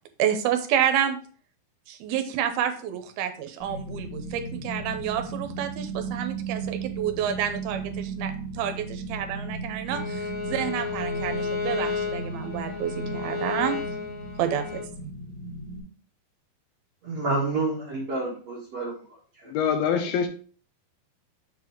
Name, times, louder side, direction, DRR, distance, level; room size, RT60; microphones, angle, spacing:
voice 1, 0.2-1.2 1.9-13.8 14.4-15.1, right 9 dB, 85° right, 2.7 m, -29 dB
sound 1, 3.6-15.8, right 3 dB, 55° left, 3.7 m, -36 dB
Bowed string instrument, 9.9-14.9, left 5 dB, 35° left, 1.7 m, -32 dB
voice 2, 17.0-18.9 19.4-19.5, right 3 dB, 50° right, 2.3 m, -28 dB
voice 3, 19.5-20.3, left 7 dB, 85° left, 2.6 m, -24 dB
7.3 x 4.1 x 4.5 m
omnidirectional pair, 4.4 m